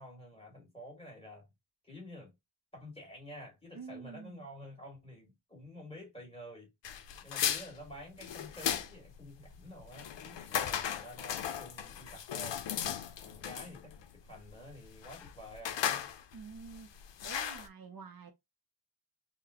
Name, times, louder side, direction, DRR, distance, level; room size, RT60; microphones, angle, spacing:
voice 1, 0.0-1.5 1.8-2.3 2.7-6.7 7.2-12.6 13.2-16.1, left 1 dB, 15° left, 2.1 m, -50 dB
voice 2, 3.7-4.5 16.3-16.9 17.2-18.3, right 5 dB, 55° right, 0.6 m, -48 dB
sound 1, 6.8-17.7, left 9 dB, 85° left, 0.6 m, -37 dB
3.9 x 2.2 x 2.8 m
wide cardioid pair, 130°, 42 cm